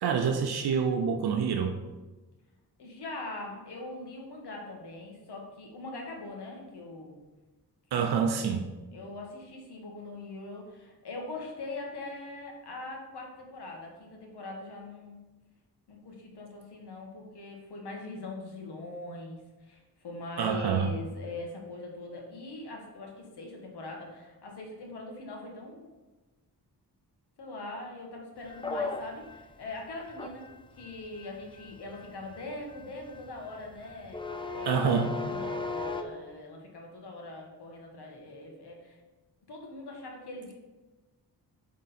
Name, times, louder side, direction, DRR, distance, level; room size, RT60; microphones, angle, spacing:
voice 1, 0.0-1.8 7.9-8.6 20.4-20.9 34.7-35.1, right 6 dB, 75° right, 5 dB, 0.6 m, -27 dB
voice 2, 2.8-7.2 7.9-8.3 8.9-15.2 15.9-25.9 27.4-30.4 30.8-34.2 34.5-39.0 39.5-40.5, left 2 dB, 90° left, 0 dB, 1.5 m, -42 dB
sound 1, 28.5-36.0, left 3 dB, 15° left, 0.3 m, -37 dB
7.8 x 3.7 x 4.2 m, 1.2 s
wide cardioid pair, 145°, 39 cm